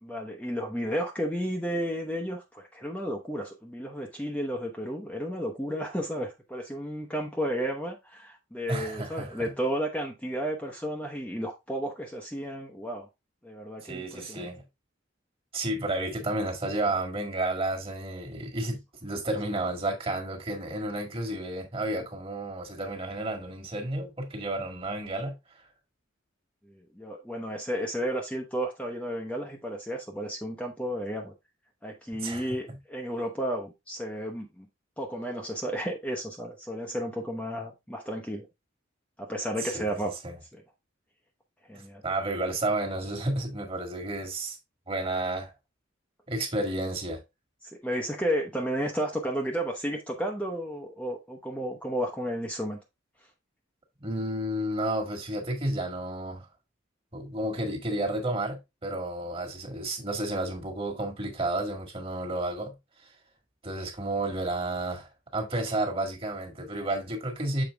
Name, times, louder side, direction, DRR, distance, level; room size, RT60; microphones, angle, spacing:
voice 1, 0.0-13.1 13.4-14.5 26.6-31.3 31.8-34.7 35.0-38.5 39.2-40.1 40.5-40.6 41.7-42.0 47.6-52.8, equal, 5° left, 0.8 m, -32 dB
voice 2, 8.7-9.5 13.8-14.6 15.5-25.3 32.2-32.8 39.6-39.9 40.2-40.3 42.0-44.6 44.9-45.5 46.3-47.2 54.0-56.4 57.1-62.7 63.6-67.6, right 1 dB, 30° right, 1.8 m, -31 dB
7.1 x 4.5 x 3.4 m
head